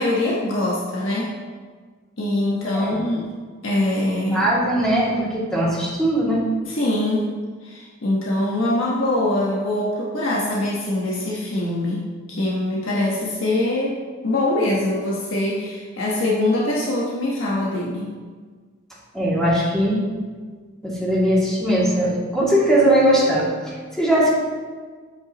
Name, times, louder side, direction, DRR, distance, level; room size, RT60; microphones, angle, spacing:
voice 1, 0.0-1.4 2.2-3.3 3.6-4.5 6.7-7.3 7.6-18.1, left 1 dB, 75° left, -5 dB, 1.2 m, -23 dB
voice 2, 4.3-6.4 19.1-20.0 20.8-24.3, right 1 dB, 5° left, -8 dB, 2.4 m, -20 dB
8.9 x 8.0 x 3.0 m, 1.5 s
head